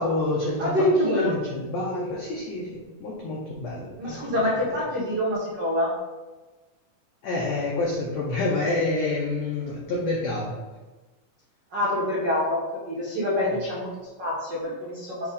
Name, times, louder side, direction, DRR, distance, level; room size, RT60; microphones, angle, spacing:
voice 1, 0.0-4.2 7.2-10.5 13.5-13.6, left 2 dB, 80° left, -3 dB, 1.5 m, -28 dB
voice 2, 0.6-1.3 4.0-5.9 11.7-15.3, left 1 dB, 80° right, -7 dB, 0.9 m, -26 dB
7.1 x 2.5 x 5.3 m, 1.2 s
omnidirectional pair, 4.1 m